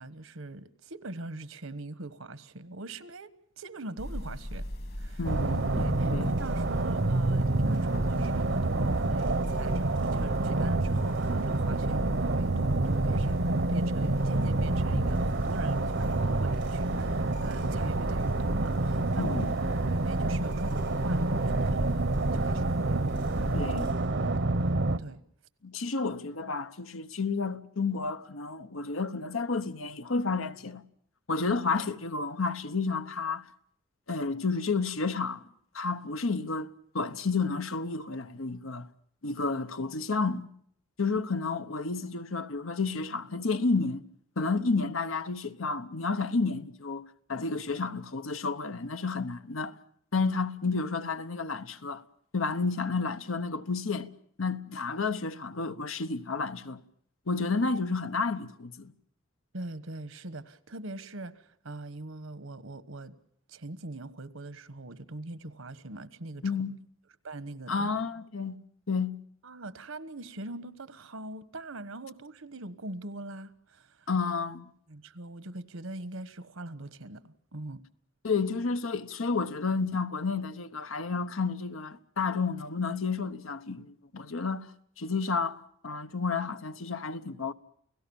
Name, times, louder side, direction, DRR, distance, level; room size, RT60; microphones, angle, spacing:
voice 1, 0.0-3.3 3.6-4.7 4.9-5.2 5.7-12.0 12.4-13.4 13.7-19.4 19.8-23.0 23.2-23.5 24.6-24.7 25.0-25.2 59.5-63.1 63.5-66.5 67.2-67.9 69.4-74.1 74.9-77.8, right 2 dB, 80° right, 1.3 m, -42 dB
sound 1, 4.0-23.9, equal, 55° left, 2.3 m, -37 dB
voice 2, 5.2-5.7 6.1-6.3 19.2-19.6 23.5-23.9 25.6-30.8 31.3-33.4 34.1-35.5 35.7-38.9 39.2-40.5 41.0-44.1 44.4-49.8 50.1-52.0 52.3-54.1 54.4-56.8 57.3-58.9 66.4-66.7 67.7-68.6 68.9-69.1 74.1-74.7 78.2-84.7 85.0-87.5, left 4 dB, 80° left, 1.1 m, -31 dB
sound 2, 5.2-25.0, right 2 dB, 60° right, 0.9 m, -28 dB
30.0 x 17.0 x 7.1 m
head